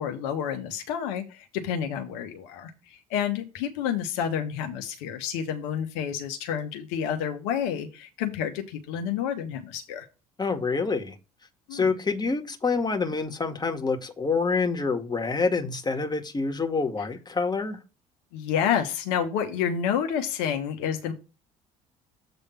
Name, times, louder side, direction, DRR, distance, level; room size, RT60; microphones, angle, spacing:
voice 1, 0.0-10.1 11.7-11.9 18.3-21.1, left 8 dB, 75° left, 1.2 m, -29 dB
voice 2, 10.4-11.2 11.7-17.8, left 4 dB, 20° left, 1.9 m, -27 dB
8.1 x 3.5 x 5.7 m
hypercardioid pair, 60°, 19 cm